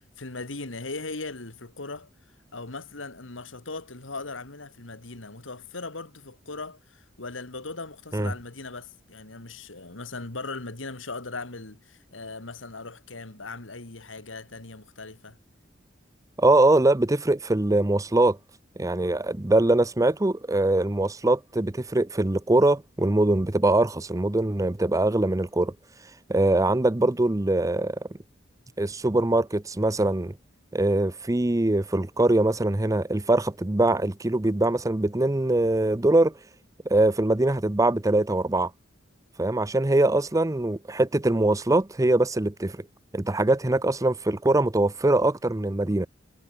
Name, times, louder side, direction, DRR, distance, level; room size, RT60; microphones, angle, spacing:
voice 1, 0.2-2.1 2.5-15.4, left 3 dB, 90° left, 2.5 m, -38 dB
voice 2, 16.4-18.4 18.8-25.7 26.3-28.0 28.8-30.3 30.7-36.3 36.9-38.7 39.4-42.8 43.1-46.1, right 2 dB, 15° right, 0.7 m, -22 dB
head